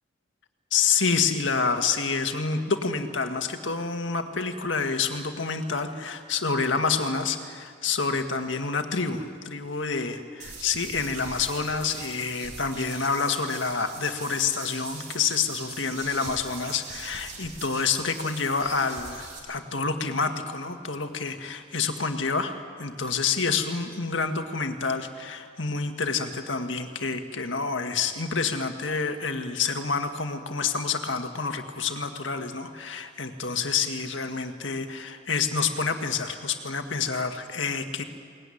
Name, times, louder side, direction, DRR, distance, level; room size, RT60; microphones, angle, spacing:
voice 1, 0.7-38.0, left 5 dB, 80° left, 6 dB, 1.8 m, -28 dB
sound 1, 10.4-19.4, right 3 dB, 40° right, 6.0 m, -42 dB
22.0 x 19.0 x 9.9 m, 2.1 s
head